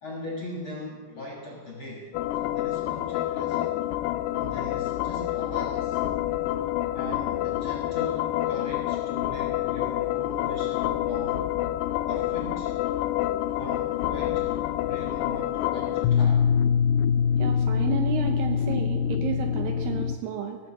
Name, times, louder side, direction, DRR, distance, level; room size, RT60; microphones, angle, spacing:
voice 1, 0.0-2.1 2.4-3.7 4.4-6.0 6.9-11.5 12.1-12.8 13.5-14.5 14.8-16.5, left 1 dB, 55° left, -2 dB, 1.4 m, -39 dB
sound 1, 2.1-20.2, left 10 dB, 85° left, 2.1 m, -26 dB
voice 2, 17.4-20.6, right 8 dB, 75° right, 4 dB, 2.2 m, -32 dB
18.0 x 6.3 x 7.4 m, 1.4 s
omnidirectional pair, 4.8 m